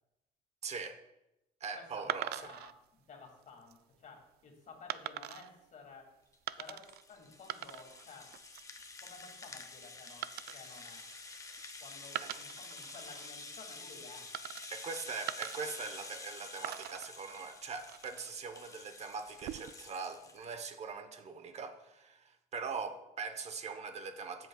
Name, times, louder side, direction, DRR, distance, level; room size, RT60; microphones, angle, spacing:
voice 1, 0.6-1.0 1.6-2.5 12.2-12.3 14.7-24.5, right 5 dB, 40° right, 8 dB, 1.0 m, -42 dB
voice 2, 1.7-6.2 6.6-6.8 7.1-8.4 9.0-11.1 11.8-14.3, left 4 dB, 50° left, 2 dB, 2.4 m, -54 dB
sound 1, 2.1-2.7 3.4-3.8 4.9-5.5 6.5-7.0 7.3-8.1 8.3-8.8 10.2-11.7 12.1-13.3 14.3-14.9 15.3-16.3 16.6-18.3 19.3-19.9, right 13 dB, 70° right, 0.4 m, -43 dB
Rattle (instrument), 6.3-20.5, left 3 dB, 20° left, 0.9 m, -49 dB
13.5 x 7.6 x 2.4 m, 0.91 s
cardioid pair, 110°, 17 cm